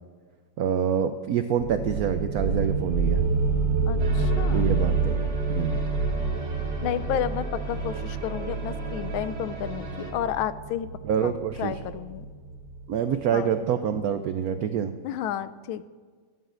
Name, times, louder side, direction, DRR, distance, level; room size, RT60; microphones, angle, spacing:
voice 1, 0.6-3.2 4.5-5.2 5.5-5.8 11.0-11.8 12.9-15.0, right 8 dB, 85° right, 8 dB, 0.8 m, -26 dB
sound 1, 1.6-13.0, right 3 dB, 35° right, 1.2 m, -28 dB
voice 2, 3.9-4.7 6.2-6.4 6.8-10.9 11.2-11.3 11.6-12.3 13.3-13.5 15.0-15.9, left 10 dB, 85° left, 14 dB, 1.4 m, -31 dB
sound 2, 4.0-10.1, right 3 dB, 50° right, 2.4 m, -39 dB
21.5 x 11.5 x 2.5 m, 1.5 s
omnidirectional pair, 2.1 m